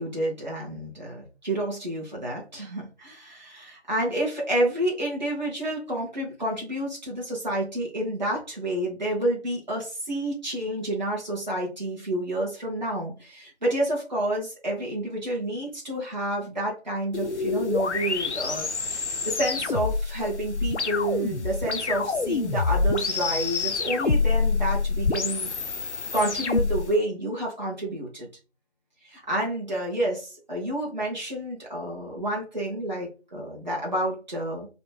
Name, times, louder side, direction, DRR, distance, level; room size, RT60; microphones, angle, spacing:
voice 1, 0.0-25.5 26.1-28.3 29.0-34.7, right 1 dB, 40° right, -4 dB, 1.4 m, -29 dB
sound 1, 17.1-26.9, left 4 dB, 85° left, 0.6 m, -27 dB
4.1 x 2.2 x 4.5 m, 0.33 s
figure-of-eight pair, 170°, 34 cm